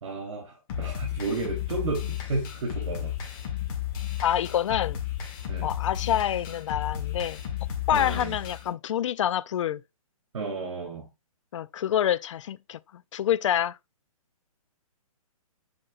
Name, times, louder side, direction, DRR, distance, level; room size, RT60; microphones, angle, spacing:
voice 1, 0.0-3.1 5.5-5.7 7.9-8.4 10.3-11.1, right 3 dB, 60° right, 3.5 m, -32 dB
sound 1, 0.7-8.7, left 10 dB, 35° left, 1.9 m, -33 dB
voice 2, 4.2-5.0 5.6-7.4 7.9-9.8 11.5-13.8, left 10 dB, 55° left, 0.4 m, -27 dB
7.8 x 5.3 x 2.5 m
hypercardioid pair, 145°, 19 cm